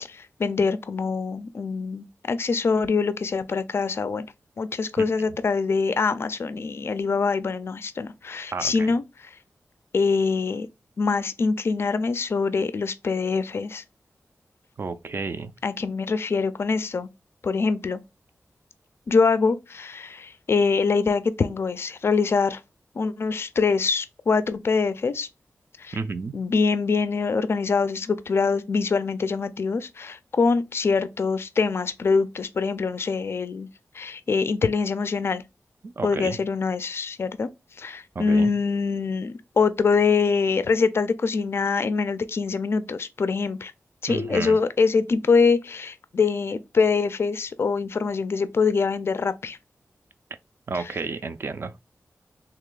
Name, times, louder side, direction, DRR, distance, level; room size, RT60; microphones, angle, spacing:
voice 1, 0.1-4.3 4.6-9.4 9.9-10.7 11.0-13.8 15.6-17.1 17.4-18.0 19.1-22.6 23.0-25.3 25.8-26.0 26.3-33.7 33.9-35.4 36.0-37.5 37.8-43.7 44.0-49.6 50.7-51.0, left 4 dB, 50° left, 0.3 m, -24 dB
voice 2, 8.5-8.9 14.8-15.5 25.9-26.4 35.8-36.4 38.2-38.5 44.1-44.6 50.7-51.7, right 4 dB, 45° right, 0.4 m, -31 dB
3.2 x 2.9 x 3.7 m
wide cardioid pair, 120°, 5 cm